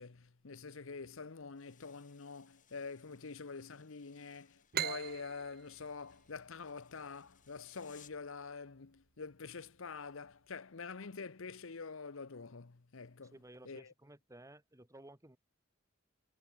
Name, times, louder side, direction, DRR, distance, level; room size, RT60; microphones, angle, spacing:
voice 1, 0.0-13.3 13.6-13.9, left 4 dB, 75° left, 0.9 m, -46 dB
sound 1, 1.5-8.3, left 10 dB, 40° left, 1.8 m, -67 dB
sound 2, 4.7-8.1, right 10 dB, 50° right, 0.7 m, -42 dB
voice 2, 13.3-15.4, right 1 dB, 15° right, 2.6 m, -56 dB
head